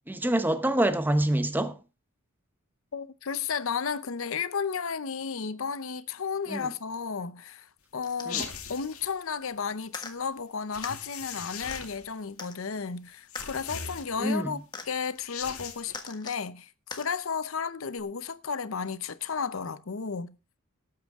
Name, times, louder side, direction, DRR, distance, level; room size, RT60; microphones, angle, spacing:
voice 1, 0.0-1.8 6.5-6.7 8.3-8.5 14.2-14.5, right 1 dB, 10° right, 0.8 m, -26 dB
voice 2, 2.9-20.4, left 6 dB, 65° left, 0.7 m, -33 dB
sound 1, 8.0-8.6 9.9-10.1 10.8-11.0 11.7-11.8 12.4-12.6 13.3-13.5 14.7-14.9 15.9-16.4 16.9-17.1 18.0-18.1, left 4 dB, 20° left, 1.5 m, -40 dB
sound 2, 8.3-9.1 10.7-12.1 13.3-14.4 15.1-16.0, left 7 dB, 80° left, 2.2 m, -39 dB
18.5 x 8.8 x 3.6 m
head